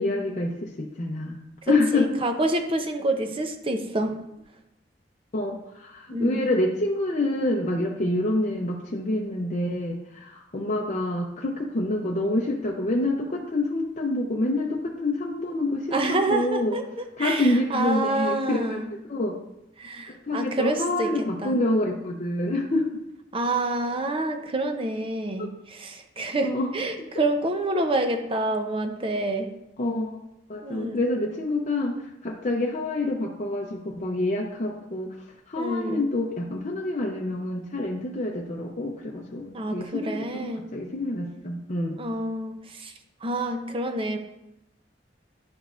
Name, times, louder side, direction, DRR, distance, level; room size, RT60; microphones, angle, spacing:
voice 1, 0.0-1.4 1.7-2.1 5.3-16.8 17.2-18.8 19.1-19.4 20.1-23.0 25.4-25.5 26.4-26.7 29.8-30.2 30.5-35.2 35.5-42.0, left 2 dB, 40° left, -2 dB, 0.6 m, -27 dB
voice 2, 1.6-4.2 6.1-6.5 15.9-18.9 19.8-21.6 23.3-29.5 30.6-31.0 35.6-36.1 39.5-40.7 42.0-42.9 43.2-44.2, right 2 dB, 30° right, 5 dB, 0.7 m, -28 dB
10.5 x 5.1 x 2.5 m, 0.86 s
head